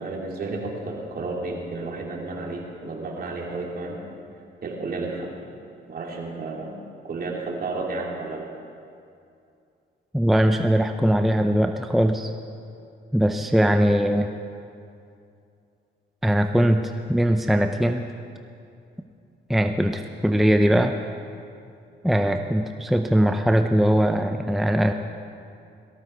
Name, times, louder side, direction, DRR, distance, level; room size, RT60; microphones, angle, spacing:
voice 1, 0.0-4.0 4.6-5.3 5.9-8.5, right 3 dB, 50° right, -2 dB, 3.3 m, -32 dB
voice 2, 10.1-12.3 13.1-14.3 16.2-18.1 19.5-20.9 22.0-24.9, equal, ahead, 6 dB, 0.6 m, -21 dB
18.0 x 14.5 x 4.7 m, 2.5 s
cardioid pair, 90°, 20 cm